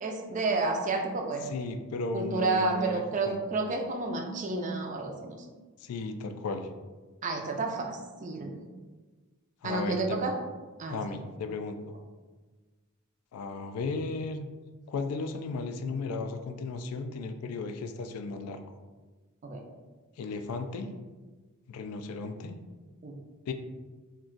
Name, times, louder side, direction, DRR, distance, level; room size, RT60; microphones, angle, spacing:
voice 1, 0.0-1.6 2.1-5.4 7.2-8.6 9.6-10.3 10.8-11.1 19.4-19.6 23.0-23.1, right 3 dB, 35° right, 2 dB, 0.4 m, -30 dB
voice 2, 1.4-3.4 5.8-6.7 9.6-10.2 10.9-11.9 13.3-14.5 14.9-18.8 20.2-20.9 21.7-22.6 23.5-23.6, left 3 dB, 70° left, 8 dB, 0.3 m, -35 dB
2.4 x 2.2 x 3.7 m, 1.3 s
head